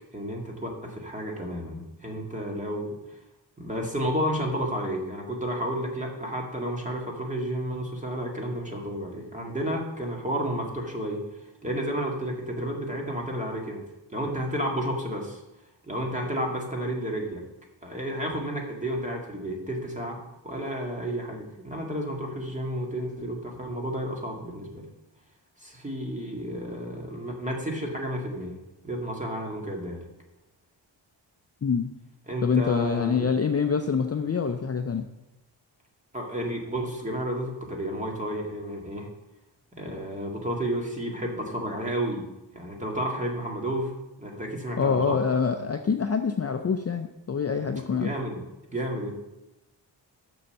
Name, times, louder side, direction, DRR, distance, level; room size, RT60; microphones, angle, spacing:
voice 1, 0.1-3.0 3.6-11.2 11.6-13.8 14.1-15.4 15.8-17.4 17.8-20.2 20.4-24.9 25.6-28.6 28.8-30.0 32.3-33.3 36.1-39.1 39.8-42.3 42.5-43.9 44.2-45.2 47.9-48.4 48.7-49.1, equal, 15° right, 0 dB, 2.0 m, -31 dB
voice 2, 32.4-35.1 44.8-48.1, left 6 dB, 35° left, 6 dB, 0.5 m, -25 dB
7.0 x 6.5 x 6.5 m, 0.98 s
wide cardioid pair, 110°, 45 cm